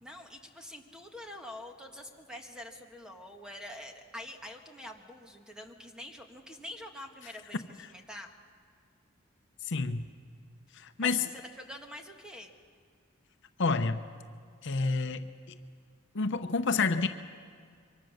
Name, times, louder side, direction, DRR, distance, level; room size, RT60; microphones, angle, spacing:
voice 1, 0.0-8.3 11.0-12.5, left 1 dB, 5° right, 3 dB, 1.7 m, -46 dB
voice 2, 9.7-10.0 10.8-11.3 13.6-14.0 14.6-15.2 16.1-17.1, left 4 dB, 60° left, 8 dB, 0.8 m, -28 dB
25.0 x 24.0 x 6.5 m, 2.1 s
head